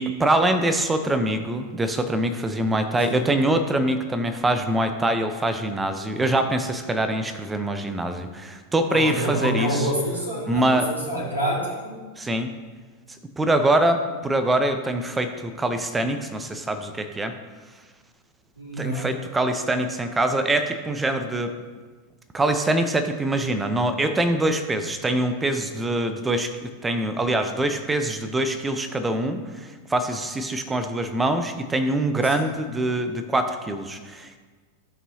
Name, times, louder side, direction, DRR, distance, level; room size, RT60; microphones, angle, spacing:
voice 1, 0.0-9.9 10.5-10.9 12.2-12.5 13.4-17.3 18.8-21.5 22.3-34.4, right 1 dB, 10° right, 8 dB, 0.7 m, -24 dB
voice 2, 8.9-12.0 18.6-19.1 32.4-32.5, equal, 85° right, -6 dB, 2.2 m, -27 dB
14.5 x 5.5 x 2.7 m, 1.4 s
figure-of-eight pair, 90°, 0 cm